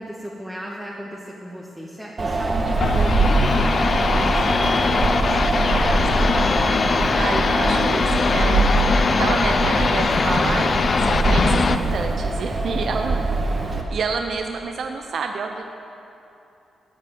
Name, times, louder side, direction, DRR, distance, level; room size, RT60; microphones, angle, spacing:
voice 1, 0.0-6.1, equal, ahead, -4 dB, 1.6 m, -34 dB
Wind, 2.2-13.8, right 2 dB, 40° right, 1.8 m, -23 dB
sound 1, 2.7-11.8, left 4 dB, 45° left, 0.6 m, -21 dB
sound 2, 2.8-12.1, left 2 dB, 75° left, 1.7 m, -35 dB
voice 2, 7.2-8.9 9.2-13.2 13.5-15.6, right 5 dB, 65° right, 4 dB, 0.8 m, -29 dB
14.0 x 9.0 x 7.8 m, 2.9 s
cardioid pair, 95°, 0 cm